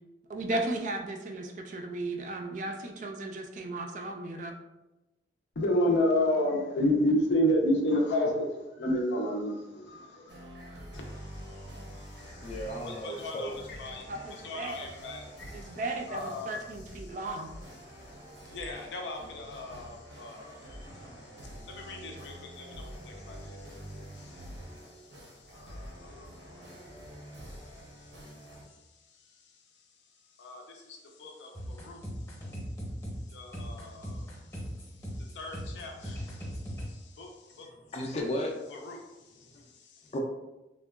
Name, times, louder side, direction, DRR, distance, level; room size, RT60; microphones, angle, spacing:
voice 1, 0.3-4.5 14.1-14.8 15.5-17.5, right 2 dB, 45° right, 4 dB, 0.3 m, -35 dB
voice 2, 5.6-10.5 10.9-15.8 16.1-16.6 17.0-17.4 17.8-29.6 30.4-32.6 33.3-37.7 38.7-40.1, left 1 dB, 90° left, 1 dB, 0.5 m, -34 dB
sound 1, 10.3-28.6, equal, 80° right, 0.7 m, -47 dB
voice 3, 12.4-13.7 37.9-38.5 40.1-40.2, equal, 35° left, 1 dB, 0.3 m, -34 dB
sound 2, 31.5-36.9, equal, 20° left, 0.7 m, -39 dB
3.5 x 2.2 x 2.2 m, 1.0 s
head